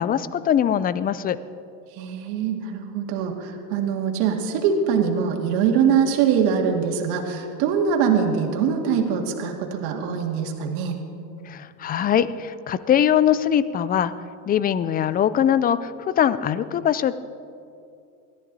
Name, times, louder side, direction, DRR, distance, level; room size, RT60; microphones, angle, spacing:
voice 1, 0.0-1.4 11.5-14.1 14.5-17.1, left 9 dB, 20° left, 16 dB, 0.3 m, -22 dB
voice 2, 2.0-11.0, right 7 dB, 65° right, 1 dB, 2.2 m, -23 dB
21.0 x 13.5 x 4.1 m, 2.5 s
supercardioid pair, 105°, 48 cm